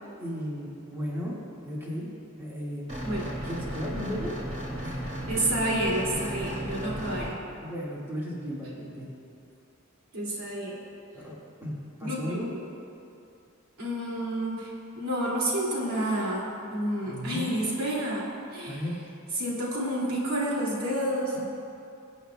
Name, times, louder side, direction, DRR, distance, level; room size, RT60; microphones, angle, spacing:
voice 1, 0.2-1.4 1.6-2.1 2.4-2.9 3.4-4.3 4.8-5.4 7.6-9.1 11.1-11.7 12.0-12.5 17.1-17.5 18.7-18.9 21.3-21.4, equal, 10° right, -6 dB, 1.9 m, -35 dB
sound 1, 2.9-7.3, equal, 35° right, 2.2 m, -35 dB
voice 2, 5.3-7.4 10.1-10.8 12.0-12.6 13.8-18.8 19.3-21.4, right 1 dB, 85° right, -5 dB, 2.4 m, -29 dB
22.5 x 8.2 x 2.3 m, 2.6 s
head